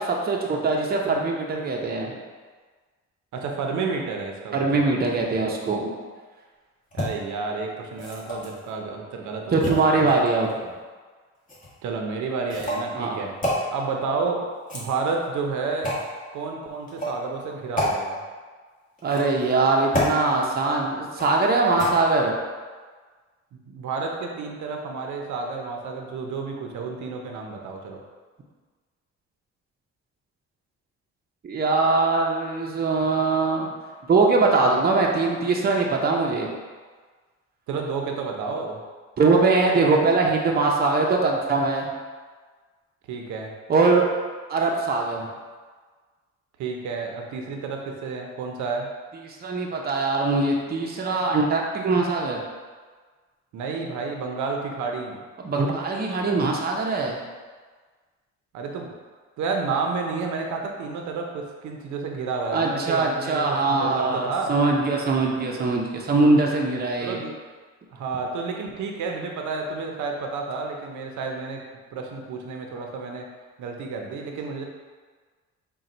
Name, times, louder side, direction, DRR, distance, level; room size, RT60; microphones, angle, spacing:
voice 1, 0.0-2.2 4.5-5.9 9.5-10.7 12.9-13.2 19.0-22.3 31.4-33.7 34.1-36.5 39.2-41.9 43.7-44.1 44.5-45.3 49.2-52.4 55.4-57.2 62.5-67.2, right 3 dB, 30° right, -1 dB, 0.6 m, -22 dB
voice 2, 3.3-4.8 6.9-10.2 11.8-14.5 14.7-15.9 16.3-18.2 23.7-28.0 37.7-38.8 43.1-43.5 46.6-48.9 53.5-55.2 58.5-58.9 59.4-64.5 67.0-67.4 67.9-71.6 71.9-73.3 73.6-74.6, right 4 dB, 75° right, 1 dB, 0.6 m, -30 dB
sound 1, 6.9-7.1 7.9-8.6 9.6-10.5 11.5-11.7 12.5-12.9 13.4-13.6 14.5-15.2 15.8-16.1 16.9-17.2 17.8-17.9 19.0-19.4 19.9-20.2 21.2-21.5 21.8-21.9, equal, 25° left, 1.3 m, -28 dB
3.8 x 2.3 x 4.3 m, 1.5 s
cardioid pair, 90°, 30 cm